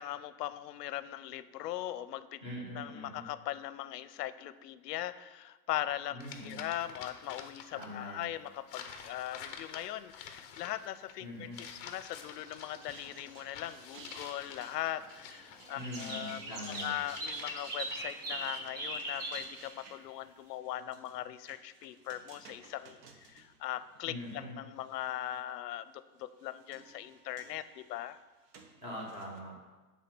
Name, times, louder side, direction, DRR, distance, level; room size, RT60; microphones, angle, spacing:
voice 1, 0.0-2.4 2.7-25.9 26.2-28.2, left 13 dB, 75° left, 14 dB, 0.6 m, -40 dB
voice 2, 2.4-3.2 6.1-6.6 7.7-8.2 11.2-11.6 15.7-16.9 24.0-24.6 28.8-29.5, equal, 10° right, -4 dB, 1.3 m, -42 dB
sound 1, 6.2-7.9 8.2-19.0, left 7 dB, 35° left, 0.6 m, -49 dB
sound 2, 12.1-13.3 13.6-13.9 14.2-15.0 15.4-19.4, right 2 dB, 45° right, 2.4 m, -40 dB
sound 3, 12.6-24.4 24.8-25.4 26.2-29.4, right 4 dB, 75° right, 1.2 m, -55 dB
8.4 x 3.6 x 6.0 m, 1.2 s
supercardioid pair, 165°, 49 cm